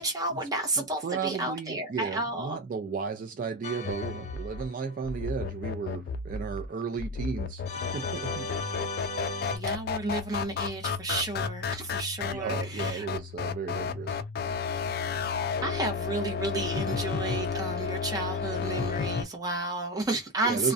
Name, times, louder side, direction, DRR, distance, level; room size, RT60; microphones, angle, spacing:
voice 1, 0.0-2.6 9.5-13.1 15.6-20.7, right 2 dB, 20° right, 0.6 m, -32 dB
voice 2, 0.8-7.6 7.9-8.5 12.3-14.2 20.4-20.7, right 6 dB, 50° right, 0.3 m, -34 dB
sound 1, 3.6-5.1 7.6-9.6, left 2 dB, 40° left, 0.7 m, -37 dB
sound 2, 3.8-19.2, left 6 dB, 60° left, 0.3 m, -33 dB
2.3 x 2.0 x 2.5 m
head